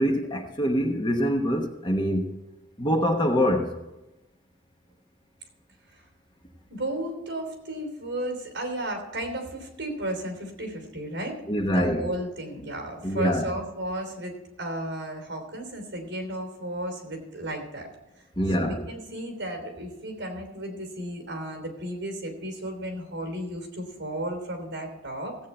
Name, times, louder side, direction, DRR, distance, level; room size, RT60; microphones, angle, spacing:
voice 1, 0.0-2.3 2.8-3.7 11.5-12.0 13.0-13.5 18.4-18.8, equal, 25° left, 3 dB, 1.1 m, -24 dB
voice 2, 6.7-11.4 11.7-14.3 14.6-17.9 18.6-25.4, right 1 dB, 60° right, 3 dB, 3.2 m, -34 dB
16.0 x 8.3 x 4.3 m, 0.99 s
head